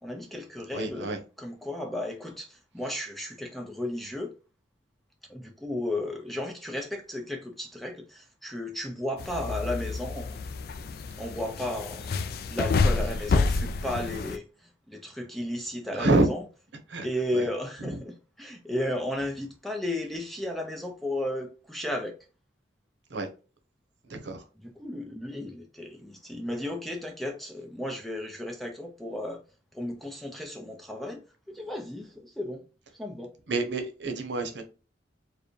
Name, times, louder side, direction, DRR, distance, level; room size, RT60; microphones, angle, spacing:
voice 1, 0.0-4.3 5.3-10.4 11.2-12.1 12.5-14.4 14.9-16.4 17.0-22.1 24.8-29.4 29.7-31.2 31.5-32.6 33.0-33.3, left 1 dB, ahead, 0.6 m, -34 dB
voice 2, 0.7-1.2 13.0-13.1 15.9-16.3 16.9-17.1 17.3-17.5 17.8-18.0 23.1-23.3 24.1-24.4 33.5-34.6, right 2 dB, 70° right, 0.8 m, -27 dB
sound 1, 9.2-14.4, left 4 dB, 50° left, 0.3 m, -29 dB
4.6 x 2.2 x 3.2 m
head